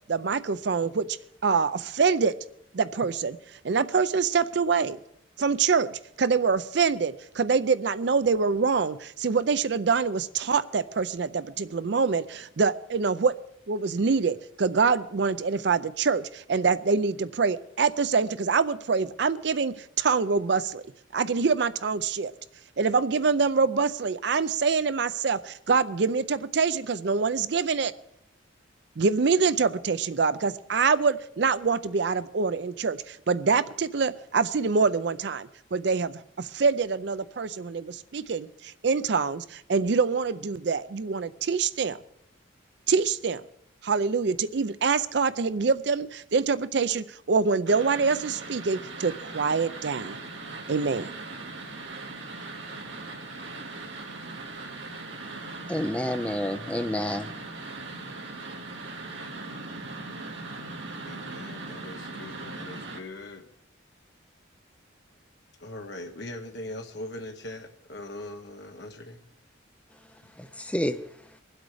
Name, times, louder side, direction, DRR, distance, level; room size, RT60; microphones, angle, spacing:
voice 1, 0.1-1.1 1.4-2.3 2.7-3.4 3.6-5.0 5.4-13.3 13.7-20.8 21.1-22.3 22.8-27.9 29.0-42.0 42.9-43.4 43.8-50.2 50.7-51.1, right 5 dB, 55° right, 15 dB, 0.5 m, -25 dB
sound 1, 47.7-63.0, right 3 dB, 70° right, 2.0 m, -39 dB
voice 2, 55.7-57.3 70.4-71.0, left 1 dB, 5° left, 9 dB, 0.5 m, -29 dB
voice 3, 61.0-63.5 65.6-69.2, left 1 dB, 60° left, 2 dB, 1.1 m, -41 dB
23.5 x 8.0 x 4.8 m, 0.71 s
head